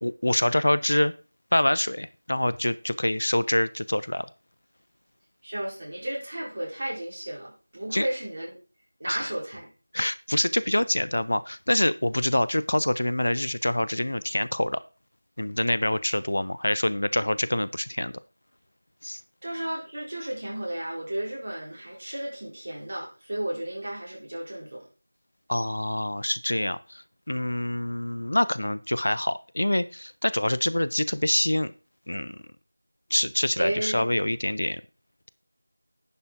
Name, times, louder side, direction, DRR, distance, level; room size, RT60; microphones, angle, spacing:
voice 1, 0.0-1.1 1.5-4.3 7.9-8.1 9.1-9.3 9.9-14.8 15.4-18.1 19.0-19.2 25.5-31.7 32.1-32.4 33.1-34.8, left 1 dB, 60° left, 15 dB, 0.6 m, -26 dB
voice 2, 5.4-8.6 9.0-9.7 19.4-24.8 33.6-34.1, right 1 dB, 40° right, -2 dB, 4.1 m, -33 dB
10.0 x 6.9 x 4.6 m, 0.34 s
figure-of-eight pair, 170°, 0 cm